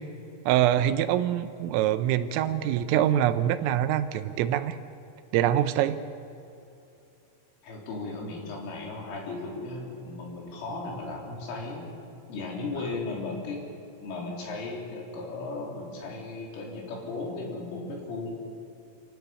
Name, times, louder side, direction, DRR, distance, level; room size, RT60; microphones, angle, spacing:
voice 1, 0.5-4.8 5.3-6.0, right 11 dB, 90° right, 11 dB, 3.5 m, -24 dB
voice 2, 7.6-12.0 12.3-13.6 14.0-18.3, left 3 dB, 75° left, -1 dB, 6.0 m, -36 dB
26.5 x 16.5 x 7.1 m, 2.7 s
omnidirectional pair, 5.7 m